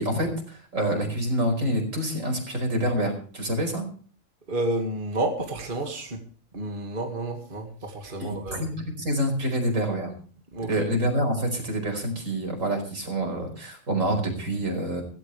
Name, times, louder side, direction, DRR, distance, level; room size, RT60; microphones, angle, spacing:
voice 1, 0.0-3.9 8.2-10.1 10.7-15.0, right 1 dB, 75° right, 4 dB, 5.3 m, -27 dB
voice 2, 4.5-6.2 6.5-8.6 10.5-10.9, right 1 dB, 40° right, 3 dB, 2.3 m, -30 dB
16.5 x 16.5 x 3.3 m, 0.42 s
omnidirectional pair, 1.4 m